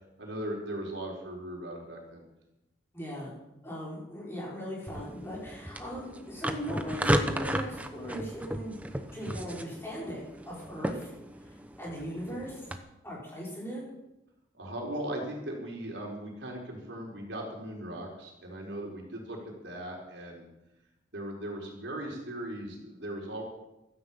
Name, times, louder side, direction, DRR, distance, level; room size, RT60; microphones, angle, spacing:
voice 1, 0.2-2.2 14.5-20.5 21.1-23.4, right 1 dB, 75° right, -1 dB, 4.4 m, -38 dB
voice 2, 2.9-3.3 3.6-8.8 9.1-11.1 11.4-12.7 13.0-13.8, equal, 15° left, -5 dB, 5.7 m, -39 dB
sound 1, 4.9-12.8, right 1 dB, 10° right, 0.8 m, -34 dB
15.5 x 13.5 x 5.7 m, 0.92 s
head